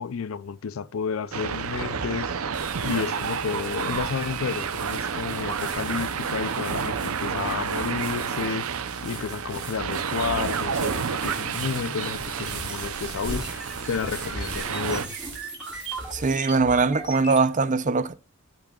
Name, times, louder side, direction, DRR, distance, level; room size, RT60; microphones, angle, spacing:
voice 1, 0.0-2.3 2.8-8.7 9.0-13.6 13.9-15.2, left 6 dB, 70° left, 0.5 m, -31 dB
sound 1, 1.3-15.1, right 6 dB, 85° right, 0.7 m, -30 dB
sound 2, 2.5-16.4, right 4 dB, 60° right, 3.8 m, -40 dB
sound 3, 12.0-17.5, right 2 dB, 5° right, 3.4 m, -38 dB
voice 2, 16.1-18.1, right 4 dB, 35° right, 0.6 m, -22 dB
15.0 x 6.0 x 2.4 m
head